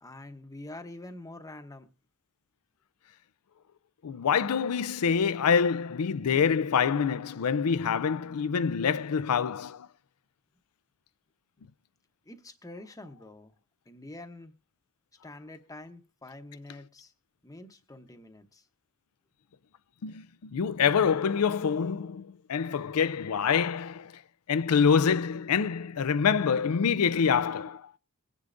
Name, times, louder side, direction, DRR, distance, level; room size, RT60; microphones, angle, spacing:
voice 1, 0.0-1.9 12.2-13.5 13.9-14.5 15.2-17.1 17.4-18.7, left 2 dB, 15° left, 0.9 m, -46 dB
voice 2, 4.0-9.9 20.0-24.1 24.5-27.9, left 6 dB, 80° left, 0.5 m, -26 dB
22.0 x 9.9 x 2.6 m
head